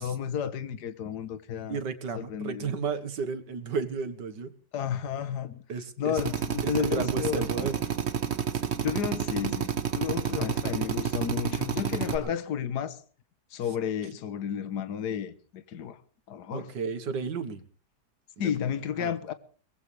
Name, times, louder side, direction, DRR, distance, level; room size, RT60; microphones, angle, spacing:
voice 1, 0.0-1.8 2.1-2.8 4.7-5.6 6.0-7.7 8.8-13.0 13.5-16.0 16.3-16.7 18.4-19.3, left 8 dB, 70° left, 1.7 m, -32 dB
voice 2, 1.7-4.5 5.7-6.2 6.6-7.7 8.5-8.6 12.1-12.3 16.5-17.6 18.4-18.5 19.0-19.1, right 5 dB, 80° right, 2.1 m, -33 dB
Drill, 6.2-12.2, right 7 dB, 45° right, 1.3 m, -30 dB
22.5 x 19.0 x 3.4 m
omnidirectional pair, 1.9 m